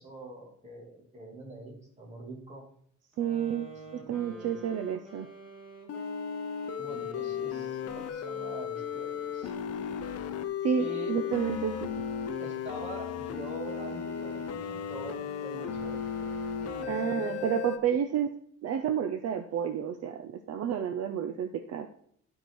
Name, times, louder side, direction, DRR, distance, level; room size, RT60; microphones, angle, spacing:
voice 1, 0.0-2.6 4.2-4.5 6.8-9.6 10.8-11.1 12.4-16.3 16.8-17.4, right 2 dB, 25° right, -2 dB, 2.6 m, -44 dB
sound 1, 3.1-10.2 10.7-17.9, right 1 dB, ahead, 3.0 m, -47 dB
voice 2, 3.2-5.3 10.6-11.9 16.9-18.3 18.6-21.9, right 8 dB, 55° right, 7 dB, 0.6 m, -30 dB
sound 2, 5.9-17.8, left 8 dB, 55° left, 0.7 m, -35 dB
12.0 x 4.8 x 4.6 m, 0.65 s
cardioid pair, 180°, 30 cm